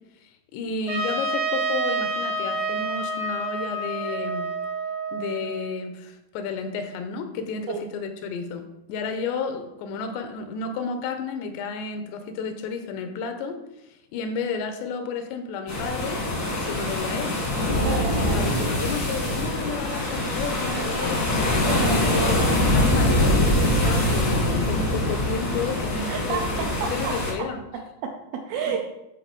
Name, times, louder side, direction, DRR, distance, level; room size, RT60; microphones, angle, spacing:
voice 1, 0.2-4.5 5.1-17.4 17.7-21.7 22.0-22.5 22.7-27.6 28.7-28.8, left 4 dB, 90° left, 7 dB, 2.9 m, -32 dB
Trumpet, 0.9-5.7, right 2 dB, 55° right, 1.3 m, -28 dB
sound 1, 15.7-27.3, left 1 dB, 60° left, 1.0 m, -23 dB
voice 2, 17.7-18.5 21.4-22.1 26.1-28.8, right 6 dB, 80° right, 2 dB, 2.2 m, -31 dB
12.5 x 4.2 x 4.7 m, 0.91 s
omnidirectional pair, 5.0 m